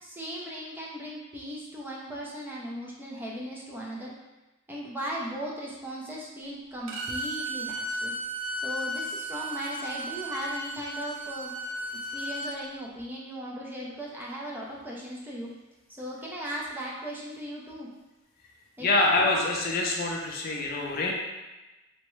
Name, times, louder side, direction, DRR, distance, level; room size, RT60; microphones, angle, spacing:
voice 1, 0.0-4.1 4.7-8.1 8.6-11.5 12.1-15.5 15.9-17.9 18.8-18.9, equal, 10° right, -4 dB, 0.4 m, -37 dB
Bowed string instrument, 6.9-12.6, right 1 dB, 70° right, 0.5 m, -34 dB
voice 2, 18.8-21.1, left 2 dB, 50° left, 0 dB, 0.4 m, -25 dB
3.4 x 2.1 x 3.0 m, 1.1 s
head